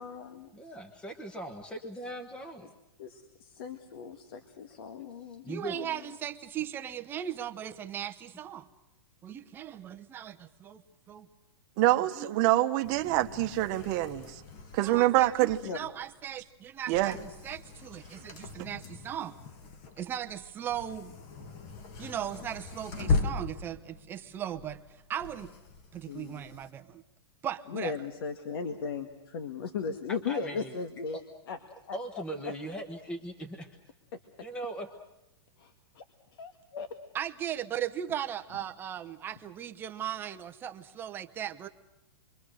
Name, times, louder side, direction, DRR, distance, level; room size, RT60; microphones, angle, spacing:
voice 1, 0.0-0.5 3.0-6.1 15.6-15.8 26.1-26.6 27.7-31.2 31.5-31.6 31.9-32.0 35.6-36.0 36.3-36.9, left 5 dB, 60° left, 8 dB, 1.9 m, -37 dB
voice 2, 0.5-2.7 5.4-5.8 30.3-30.8 31.1-31.2 31.9-33.7 34.4-34.9, right 1 dB, 5° left, 7 dB, 1.2 m, -39 dB
voice 3, 5.4-8.7 9.2-10.8 11.1-11.3 11.9-12.3 14.8-19.4 20.0-21.1 22.0-24.8 25.1-25.5 25.9-27.0 27.4-27.9 37.1-41.7, right 10 dB, 15° right, 7 dB, 0.8 m, -38 dB
voice 4, 11.8-14.3 14.7-15.6 16.9-17.2, right 16 dB, 30° right, 7 dB, 1.2 m, -25 dB
sound 1, 12.8-26.7, left 3 dB, 35° left, 2.0 m, -38 dB
28.0 x 23.5 x 6.5 m, 0.91 s
supercardioid pair, 165°, 14 cm